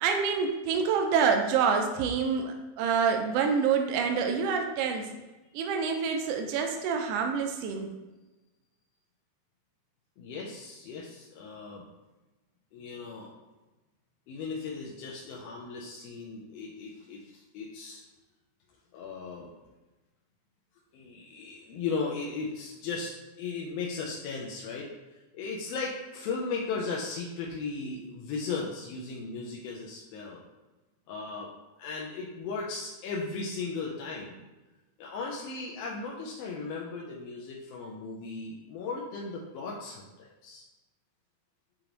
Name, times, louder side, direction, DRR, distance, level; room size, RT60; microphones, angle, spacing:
voice 1, 0.0-5.1 5.5-7.9, right 6 dB, 85° right, 4 dB, 1.4 m, -27 dB
voice 2, 10.2-11.9 12.7-13.3 14.3-18.0 18.9-19.5 20.9-30.4 31.1-31.5 31.8-34.4 35.0-40.6, left 4 dB, 80° left, -3 dB, 1.5 m, -37 dB
6.7 x 2.5 x 2.9 m, 1.1 s
omnidirectional pair, 3.4 m